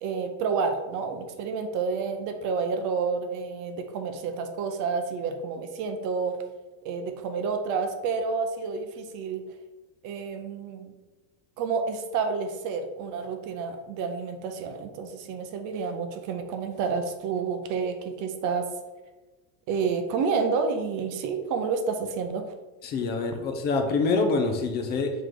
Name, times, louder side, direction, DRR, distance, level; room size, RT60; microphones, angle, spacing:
voice 1, 0.0-6.4 6.8-9.4 10.0-10.9 11.6-18.7 19.7-22.5, right 5 dB, 40° right, 6 dB, 0.5 m, -29 dB
voice 2, 22.8-25.1, left 3 dB, 25° left, 4 dB, 0.3 m, -25 dB
4.6 x 3.1 x 3.7 m, 1.2 s
supercardioid pair, 125°, 48 cm